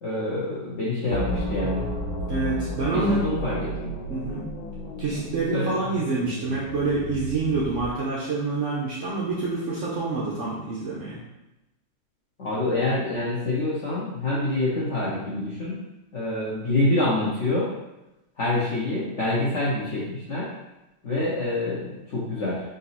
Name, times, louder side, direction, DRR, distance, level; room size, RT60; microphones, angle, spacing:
voice 1, 0.0-1.8 2.9-3.9 5.5-5.7 12.4-15.8 16.1-17.7 18.4-20.5 21.0-22.6, left 2 dB, 60° left, -7 dB, 0.7 m, -26 dB
sound 1, 1.1-8.0, equal, 90° left, 1.6 m, -32 dB
voice 2, 2.3-3.3 4.1-4.4 5.0-11.2, right 3 dB, 90° right, -6 dB, 0.6 m, -27 dB
3.8 x 2.7 x 4.1 m, 0.97 s
omnidirectional pair, 2.2 m